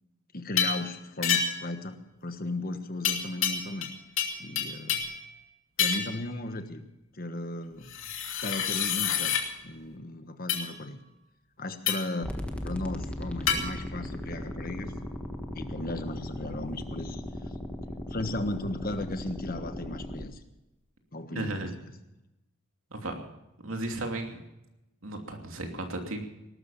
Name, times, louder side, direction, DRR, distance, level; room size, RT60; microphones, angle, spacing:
voice 1, 0.3-3.9 4.4-5.0 5.8-6.8 7.1-7.9 8.4-11.0 11.6-12.4 12.6-14.9 15.5-17.2 18.1-20.4 21.1-21.9, left 2 dB, 40° left, 8 dB, 1.3 m, -36 dB
sound 1, 0.6-0.8 1.2-1.7 3.0-3.9 4.2-5.2 5.8-6.2 7.9-9.4 10.5-10.7 11.9-12.2 13.5-13.6, left 7 dB, 65° left, 2.6 m, -28 dB
sound 2, 12.2-20.2, left 1 dB, 5° left, 1.3 m, -37 dB
voice 2, 21.3-21.7 22.9-23.1 23.6-24.4 25.0-26.2, right 2 dB, 70° right, 3 dB, 2.8 m, -34 dB
19.5 x 12.5 x 5.7 m, 0.93 s
head